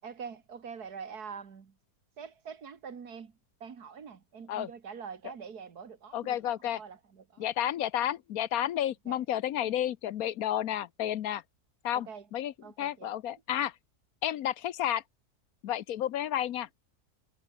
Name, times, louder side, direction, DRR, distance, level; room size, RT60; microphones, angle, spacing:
voice 1, 0.0-1.8 2.2-6.4 6.7-7.4 9.1-9.2 9.6-9.7 11.9-12.3 12.6-13.1, right 6 dB, 80° right, 2.4 m, -45 dB
voice 2, 6.1-6.8 7.4-11.4 11.8-13.7 14.2-15.0 15.6-16.7, left 11 dB, 70° left, 1.2 m, -31 dB
omnidirectional pair, 1.6 m